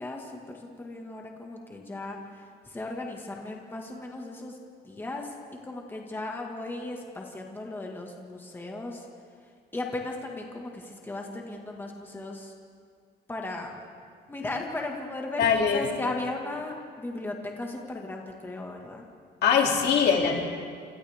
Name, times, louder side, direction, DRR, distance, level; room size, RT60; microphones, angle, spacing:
voice 1, 0.0-4.6 4.8-5.4 5.6-9.1 9.7-12.5 13.3-13.8 14.3-15.5 15.7-19.0, left 2 dB, 10° left, 0 dB, 1.9 m, -36 dB
voice 2, 15.4-15.9 19.4-20.4, left 6 dB, 70° left, 0 dB, 2.9 m, -22 dB
29.0 x 27.0 x 3.6 m, 2.2 s
cardioid pair, 165°, 18 cm